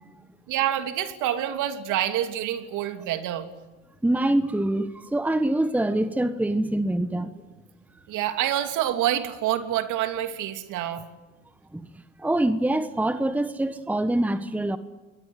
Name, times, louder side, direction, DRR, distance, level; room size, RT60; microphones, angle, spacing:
voice 1, 0.5-3.5 8.1-11.0, right 12 dB, 55° right, 3.0 m, -27 dB
voice 2, 4.0-7.3 11.7-11.9 12.2-14.8, right 1 dB, 5° right, 1.3 m, -24 dB
27.5 x 21.5 x 9.9 m
supercardioid pair, 95°, 36 cm